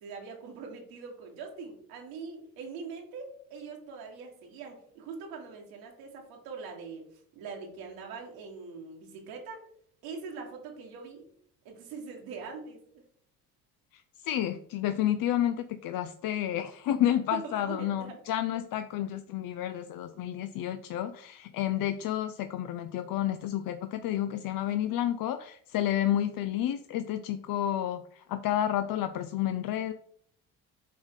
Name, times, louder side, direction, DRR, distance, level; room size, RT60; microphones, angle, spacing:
voice 1, 0.0-7.1 7.3-9.6 10.0-11.2 11.6-12.8 17.4-18.2 19.9-20.2 24.7-24.9, right 4 dB, 85° right, 0 dB, 1.7 m, -43 dB
voice 2, 13.9-29.9, left 11 dB, 60° left, 10 dB, 0.5 m, -30 dB
7.6 x 3.6 x 3.7 m, 0.63 s
supercardioid pair, 65°, 40 cm